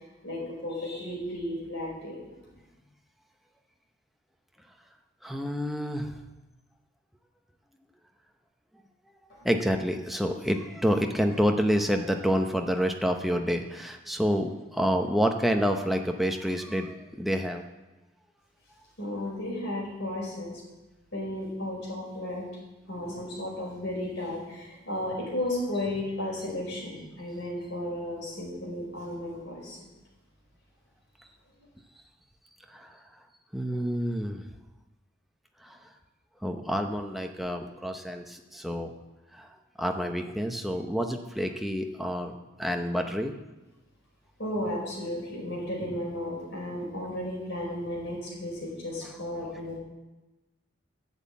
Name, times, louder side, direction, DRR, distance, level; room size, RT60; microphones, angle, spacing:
voice 1, 0.2-2.2 9.4-9.5 19.0-20.5 21.1-22.4 22.9-29.8 44.4-49.8, left 1 dB, 60° left, -3 dB, 5.1 m, -34 dB
voice 2, 5.2-6.1 9.4-17.6 32.7-32.9 33.5-34.4 35.6-35.8 36.4-38.9 39.3-39.5 39.8-42.3 42.6-43.3, equal, ahead, 3 dB, 0.8 m, -28 dB
11.5 x 7.4 x 8.4 m, 1.1 s
head